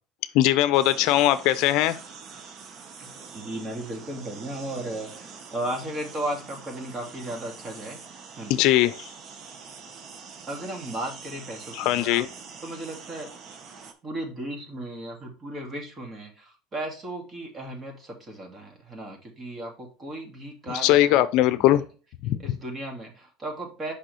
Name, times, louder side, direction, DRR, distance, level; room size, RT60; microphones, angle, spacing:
voice 1, 0.3-2.0 8.5-8.9 11.7-12.3 20.8-21.8 22.2-22.4, left 14 dB, 65° left, 13 dB, 0.5 m, -20 dB
sound 1, 0.7-13.9, right 5 dB, 40° right, 1.1 m, -44 dB
voice 2, 3.0-8.0 8.3-8.7 10.5-12.2 12.6-13.3 14.0-21.3 21.6-21.8 22.4-23.9, right 1 dB, 25° right, 2 dB, 2.4 m, -35 dB
6.4 x 5.5 x 3.2 m, 0.36 s
cardioid pair, 140°, 0 cm